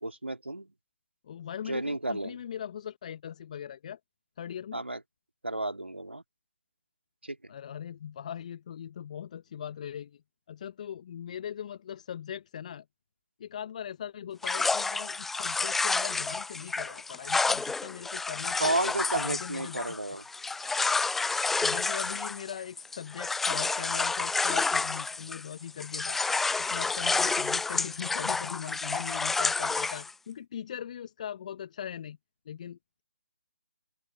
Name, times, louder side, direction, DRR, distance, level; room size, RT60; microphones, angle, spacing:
voice 1, 0.0-0.7 1.7-2.4 4.7-5.0 5.4-6.2 7.2-7.4 18.6-20.2 27.2-27.3, right 2 dB, 85° right, 2.2 m, -32 dB
voice 2, 1.2-4.0 4.4-4.8 7.5-10.2 10.5-12.8 13.4-18.8 19.1-20.0 21.6-26.2 26.6-32.2 32.4-32.8, left 9 dB, 40° left, 1.2 m, -40 dB
sound 1, 14.4-25.5 25.8-30.1, left 4 dB, 5° left, 0.5 m, -29 dB
open air
figure-of-eight pair, 140°, 6 cm